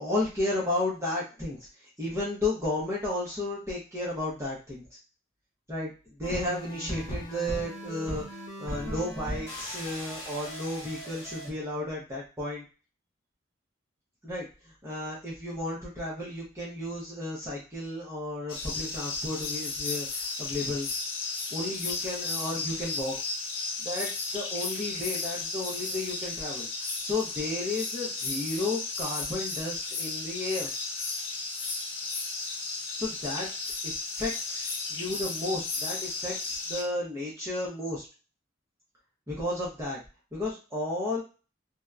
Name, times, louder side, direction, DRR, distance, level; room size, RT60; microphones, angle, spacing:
voice 1, 0.0-4.8 5.7-8.2 8.6-12.6 14.2-20.9 21.5-23.1 23.8-30.7 33.0-33.5 33.8-38.0 39.3-40.0 40.3-41.2, left 2 dB, 15° right, -6 dB, 0.7 m, -33 dB
sound 1, 6.2-11.5, equal, 15° left, 1.0 m, -38 dB
sound 2, 18.5-36.8, left 3 dB, 80° left, 0.7 m, -34 dB
2.7 x 2.1 x 2.3 m, 0.33 s
head